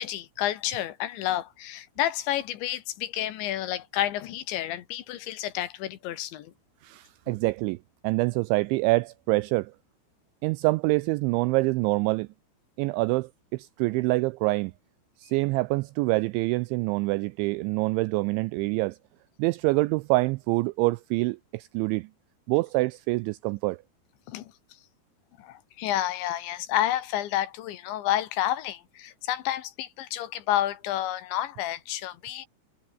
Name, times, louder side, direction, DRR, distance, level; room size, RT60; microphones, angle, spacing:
voice 1, 0.0-6.5 7.3-7.4 24.3-24.5 25.4-32.5, left 13 dB, 70° left, 3.5 m, -30 dB
voice 2, 6.8-7.8 8.0-9.7 10.4-12.3 12.8-14.7 15.2-19.0 19.4-22.1 22.5-23.8, right 22 dB, 85° right, 2.6 m, -26 dB
omnidirectional pair, 5.8 m